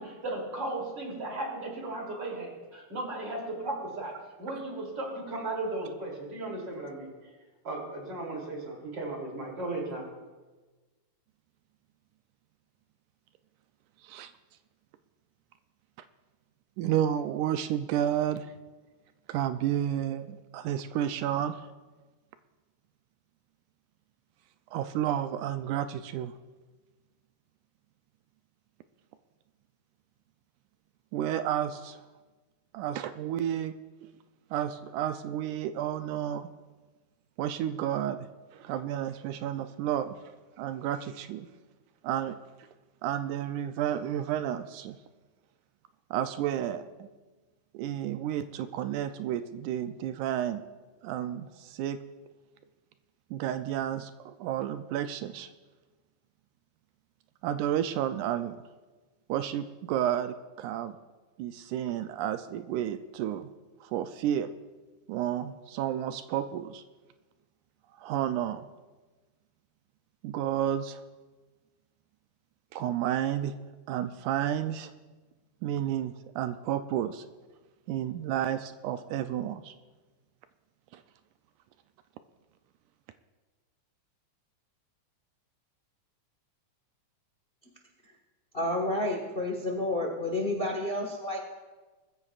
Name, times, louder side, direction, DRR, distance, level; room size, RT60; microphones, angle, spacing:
voice 1, 0.0-4.1 4.4-7.1 7.6-10.1, right 2 dB, 35° right, -1 dB, 3.5 m, -36 dB
voice 2, 16.8-18.5 19.3-21.6 24.7-26.3 31.1-32.0 32.7-33.7 34.5-36.5 37.4-38.3 38.5-40.2 40.6-41.5 42.0-42.4 43.0-45.0 46.1-47.1 47.7-50.6 51.0-52.0 53.3-55.5 57.4-58.6 59.3-61.0 61.4-63.5 63.8-64.5 65.1-66.8 68.0-68.7 70.2-71.0 72.7-73.5 73.9-74.9 75.6-77.2 77.9-79.7 80.9-81.0, right 10 dB, 80° right, 9 dB, 2.0 m, -31 dB
voice 3, 88.5-91.4, left 1 dB, 85° left, 1 dB, 0.5 m, -30 dB
21.0 x 14.5 x 2.4 m, 1.3 s
omnidirectional pair, 3.5 m